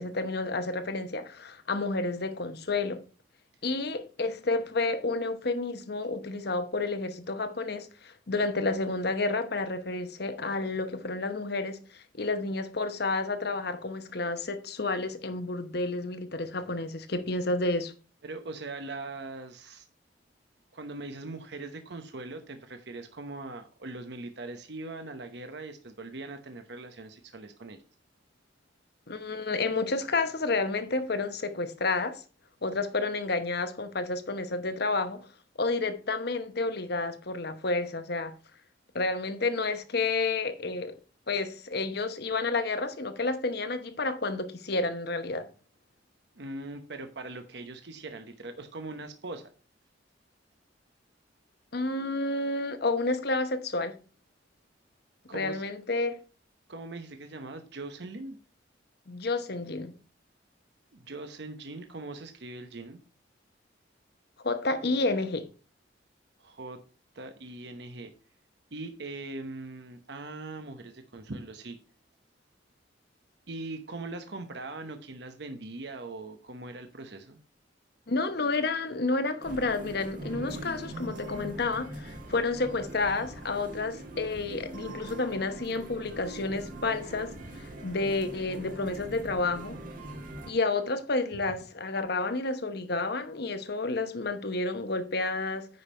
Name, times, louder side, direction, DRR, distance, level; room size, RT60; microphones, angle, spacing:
voice 1, 0.0-3.0 3.6-17.9 29.1-32.2 32.6-35.3 35.6-38.3 38.9-41.0 41.3-45.5 51.7-54.0 55.3-56.2 59.1-59.9 64.4-65.5 78.1-89.8 90.5-95.7, left 3 dB, 60° left, 1.0 m, -30 dB
voice 2, 18.2-19.9 20.7-27.8 46.3-49.5 55.3-55.6 56.7-58.4 60.9-63.0 66.4-66.8 67.1-68.1 68.7-71.8 73.5-77.4, right 2 dB, 60° right, 0.9 m, -41 dB
Casino - Las Vegas Slot Machines, 79.4-90.5, right 2 dB, 45° right, 1.6 m, -42 dB
9.5 x 5.3 x 4.3 m
head